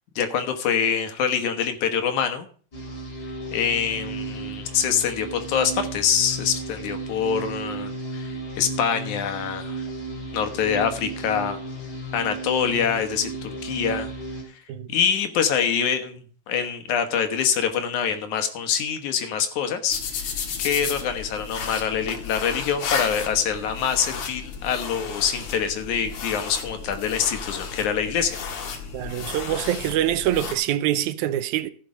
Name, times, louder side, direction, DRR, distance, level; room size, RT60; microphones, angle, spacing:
voice 1, 0.2-2.5 3.5-9.9 10.3-11.6 12.1-14.1 14.9-28.4, left 7 dB, 85° left, 2.8 m, -25 dB
sound 1, 2.7-14.4, right 2 dB, 35° left, 3.1 m, -34 dB
sound 2, 19.9-30.5, left 6 dB, 65° left, 2.7 m, -33 dB
voice 2, 28.9-31.7, right 12 dB, 90° right, 2.1 m, -25 dB
15.0 x 6.8 x 5.1 m
omnidirectional pair, 3.3 m